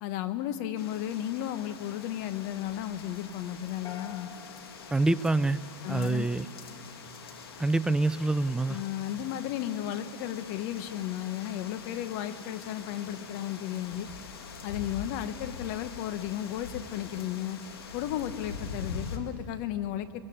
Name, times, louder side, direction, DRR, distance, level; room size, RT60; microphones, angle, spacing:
voice 1, 0.0-4.3 5.8-6.3 8.7-14.1 14.6-17.6 17.9-20.2, left 12 dB, 55° left, 10 dB, 1.3 m, -34 dB
sound 1, 0.8-19.2, left 5 dB, 80° left, 2.4 m, -44 dB
sound 2, 3.8-6.1, left 9 dB, 25° left, 1.1 m, -48 dB
voice 2, 4.9-5.6 5.9-6.4 7.6-8.8, right 2 dB, 5° right, 15 dB, 0.5 m, -26 dB
23.5 x 22.0 x 8.8 m, 2.5 s
hypercardioid pair, 105°, 13 cm